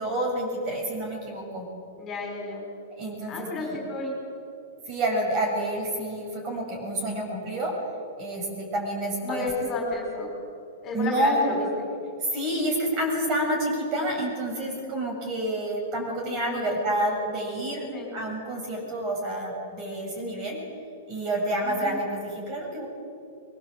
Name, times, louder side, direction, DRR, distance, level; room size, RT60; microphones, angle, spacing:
voice 1, 0.0-1.7 2.9-3.8 4.9-7.7 8.2-9.5 10.9-11.5 12.3-20.6 21.1-22.9, right 1 dB, 30° right, 1 dB, 7.4 m, -29 dB
voice 2, 2.0-2.7 3.3-4.1 9.2-10.3 10.8-11.8 16.2-17.1 17.9-18.1 21.6-22.0, left 3 dB, 20° left, 0 dB, 5.1 m, -32 dB
24.5 x 22.0 x 8.1 m, 2.6 s
supercardioid pair, 165°, 0 cm